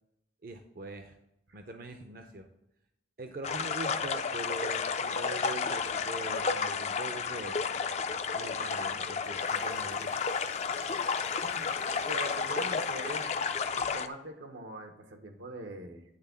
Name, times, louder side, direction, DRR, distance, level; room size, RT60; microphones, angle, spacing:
voice 1, 0.4-1.2 1.5-2.5 3.2-7.6 8.3-10.1 10.5-10.6, right 2 dB, 50° right, 5 dB, 0.6 m, -42 dB
sound 1, 3.4-14.1, left 5 dB, 35° left, 0.4 m, -32 dB
sound 2, 8.9-13.9, left 6 dB, 70° left, 0.9 m, -51 dB
voice 2, 12.0-13.3 13.9-16.0, right 1 dB, 85° right, 6 dB, 1.1 m, -42 dB
9.7 x 3.6 x 6.9 m, 0.84 s
head